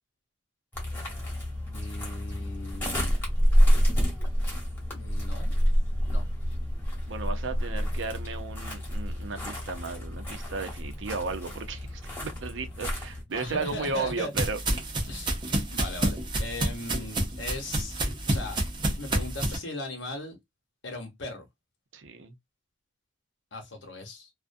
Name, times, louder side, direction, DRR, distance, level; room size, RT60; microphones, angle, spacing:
sound 1, 0.7-13.2, equal, 10° left, 1.0 m, -28 dB
voice 1, 1.7-3.1 4.9-5.6 6.0-6.2 12.8-12.9 13.3-14.3 15.1-18.0 18.3-18.6 19.0-20.4 20.8-21.5 23.5-24.3, left 2 dB, 70° left, 0.9 m, -38 dB
voice 2, 7.1-14.6 21.9-22.3, right 4 dB, 75° right, 0.6 m, -34 dB
sound 2, 13.4-19.6, right 1 dB, 25° right, 0.6 m, -29 dB
2.4 x 2.1 x 2.5 m
head